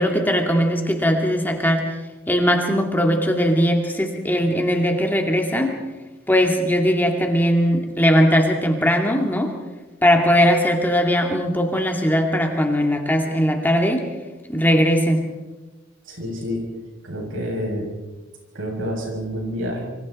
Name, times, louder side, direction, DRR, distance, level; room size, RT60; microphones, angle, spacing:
voice 1, 0.0-1.8 2.3-5.8 6.3-9.5 10.0-14.1 14.5-15.2, equal, 10° left, 2 dB, 2.3 m, -19 dB
voice 2, 16.0-16.7 17.0-17.9 18.5-19.8, equal, 80° right, 1 dB, 7.2 m, -28 dB
26.5 x 25.5 x 4.3 m, 1.2 s
head